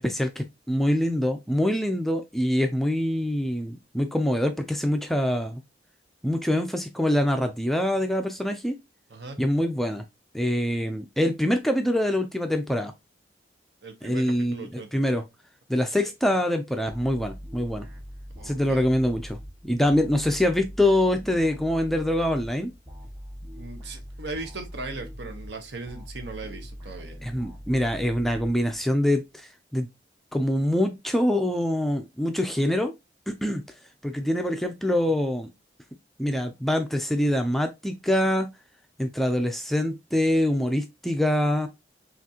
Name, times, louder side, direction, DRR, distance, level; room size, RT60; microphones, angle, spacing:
voice 1, 0.0-5.6 6.2-8.8 9.4-10.0 10.3-12.9 14.0-15.2 15.7-17.9 18.4-19.4 19.6-22.7 27.2-29.9 30.3-32.9 33.3-33.6 34.0-35.5 36.2-38.5 39.0-41.7, left 1 dB, ahead, 0.3 m, -25 dB
voice 2, 13.8-15.2 15.7-16.1 18.3-18.8 23.5-27.2, right 3 dB, 70° right, 0.9 m, -39 dB
sound 1, 16.9-29.1, equal, 20° right, 1.5 m, -42 dB
5.8 x 2.5 x 2.8 m
head